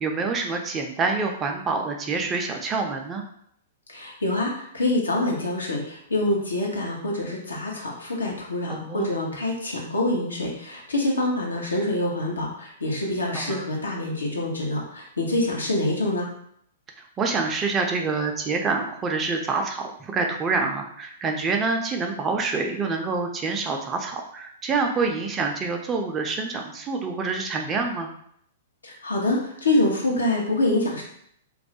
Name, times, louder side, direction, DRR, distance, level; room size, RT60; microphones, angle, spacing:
voice 1, 0.0-3.2 8.7-9.1 13.3-13.6 17.2-28.1, right 4 dB, 25° right, 2 dB, 0.4 m, -26 dB
voice 2, 3.9-16.3 28.8-31.0, left 1 dB, 85° left, -2 dB, 0.7 m, -26 dB
2.3 x 2.0 x 2.7 m, 0.68 s
hypercardioid pair, 110°, 0 cm